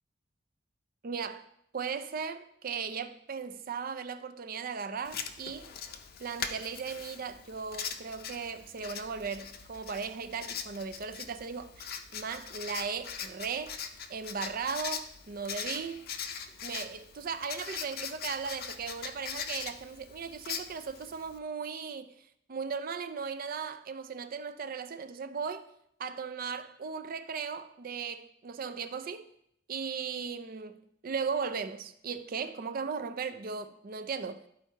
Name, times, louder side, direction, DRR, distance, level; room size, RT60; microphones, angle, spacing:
voice 1, 1.0-1.5 1.7-5.7 6.2-13.8 14.1-16.1 16.6-22.1 22.5-25.7 26.0-29.3 29.7-34.4, right 5 dB, 50° right, 0.5 m, -37 dB
Writing, 5.0-21.4, left 7 dB, 55° left, 0.6 m, -41 dB
12.5 x 4.5 x 2.8 m
head